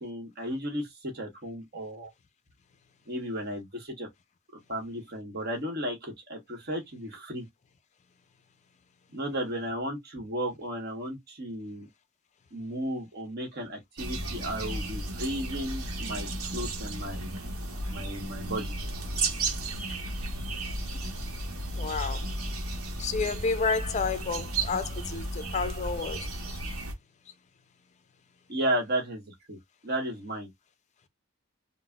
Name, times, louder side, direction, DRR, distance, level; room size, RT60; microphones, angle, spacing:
voice 1, 0.0-2.1 3.1-4.1 4.7-7.5 9.1-11.9 12.5-16.3 16.5-17.3 17.9-18.7 28.5-30.5, right 1 dB, 50° right, 1.0 m, -34 dB
sound 1, 14.0-26.9, right 2 dB, 80° right, 0.9 m, -34 dB
voice 2, 21.8-22.3 23.0-26.3 26.7-26.8, left 4 dB, 35° left, 0.4 m, -30 dB
3.9 x 2.0 x 2.3 m
head